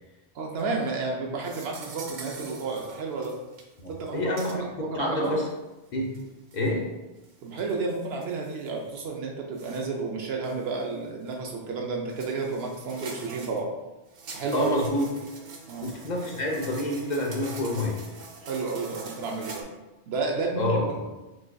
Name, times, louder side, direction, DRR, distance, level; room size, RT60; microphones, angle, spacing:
voice 1, 0.3-3.3 3.9-5.3 7.4-13.7 14.3-14.8 15.7-15.9 18.4-19.6 20.1-21.1, right 4 dB, 90° right, -1 dB, 0.9 m, -31 dB
sound 1, 0.6-0.9 1.4-3.6 3.9-4.1 4.4-4.5 5.2-5.3 6.1-6.7 7.2-9.0 9.5-9.9 10.4-10.8 11.3-11.4 12.1-13.6 14.1-19.6, right 3 dB, 55° right, 0.6 m, -44 dB
voice 2, 3.8-4.5 4.9-5.5 5.9-6.2 6.5-6.8 14.5-15.1 15.8-18.0 20.6-21.1, left 1 dB, 50° left, -1 dB, 0.7 m, -28 dB
6.3 x 2.6 x 2.2 m, 1.1 s
omnidirectional pair, 1.0 m